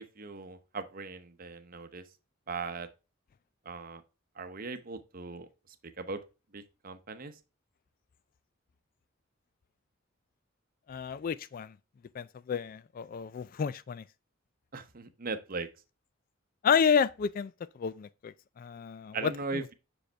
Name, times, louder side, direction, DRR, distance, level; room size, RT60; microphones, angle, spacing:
voice 1, 0.0-2.0 2.5-2.9 3.7-4.0 4.4-5.5 6.0-6.2 6.5-7.4 14.7-15.7 19.1-19.7, right 4 dB, 45° right, 0.8 m, -39 dB
voice 2, 10.9-11.8 12.1-14.0 16.6-19.6, left 6 dB, 45° left, 0.3 m, -30 dB
6.4 x 5.1 x 3.3 m
head